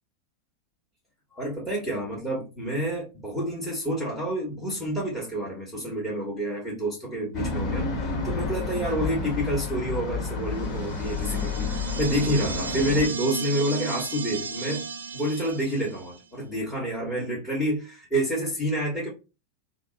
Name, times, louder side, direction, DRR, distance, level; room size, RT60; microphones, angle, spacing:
voice 1, 1.3-14.8 15.1-19.1, equal, 5° left, 1.6 m, -28 dB
sound 1, 7.3-13.1, left 4 dB, 30° left, 1.6 m, -30 dB
sound 2, 10.8-16.2, right 5 dB, 70° right, 0.6 m, -35 dB
3.4 x 2.1 x 3.8 m
figure-of-eight pair, 90°, 0 cm